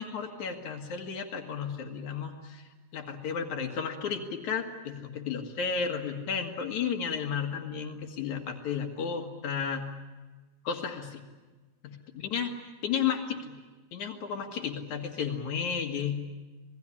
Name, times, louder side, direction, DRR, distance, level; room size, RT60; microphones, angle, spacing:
voice 1, 0.0-9.8 10.6-11.2 11.8-12.5 12.8-13.5 13.9-16.2, left 7 dB, 75° left, 4 dB, 3.1 m, -33 dB
27.5 x 19.5 x 9.9 m, 1.3 s
omnidirectional pair, 3.4 m